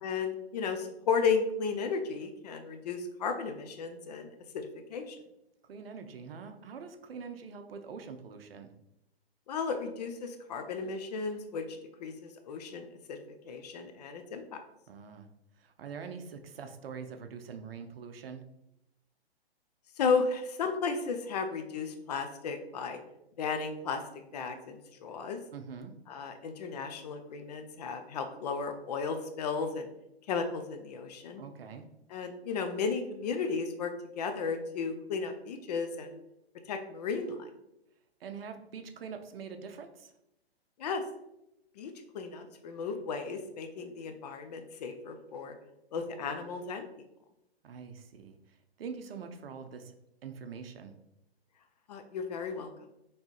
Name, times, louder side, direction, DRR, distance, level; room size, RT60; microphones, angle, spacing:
voice 1, 0.0-5.2 9.5-13.2 13.4-14.6 20.0-23.0 23.4-25.4 26.1-29.9 30.3-31.4 32.1-36.1 36.7-37.5 40.8-41.0 41.8-45.5 45.9-46.9 51.9-52.7, left 5 dB, 40° left, 7 dB, 0.5 m, -34 dB
voice 2, 5.6-8.7 14.9-15.3 15.6-18.4 25.5-25.9 31.4-31.9 38.2-40.1 47.6-49.9 50.2-51.0, right 6 dB, 65° right, 7 dB, 0.6 m, -44 dB
4.4 x 3.2 x 2.9 m, 0.86 s
hypercardioid pair, 130°, 32 cm